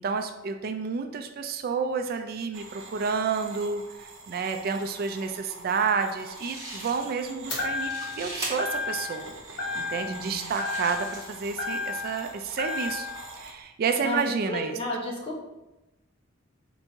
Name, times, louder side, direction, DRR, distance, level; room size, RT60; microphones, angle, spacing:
voice 1, 0.0-9.3 9.8-13.1 13.3-14.8, right 5 dB, 50° right, 6 dB, 0.3 m, -30 dB
sound 1, 2.5-13.5, right 3 dB, 85° right, 0.7 m, -44 dB
sound 2, 6.3-7.3 7.6-8.5 9.3-9.4 10.0-11.5, right 1 dB, 20° right, 1.2 m, -40 dB
sound 3, 7.5-8.2 8.6-9.2 9.6-10.3 10.6-12.2 12.6-13.2, left 4 dB, 60° left, 1.2 m, -32 dB
voice 2, 10.1-10.4 14.0-14.2 14.4-15.4, left 1 dB, 30° left, -2 dB, 1.0 m, -33 dB
4.5 x 2.7 x 4.4 m, 0.99 s
head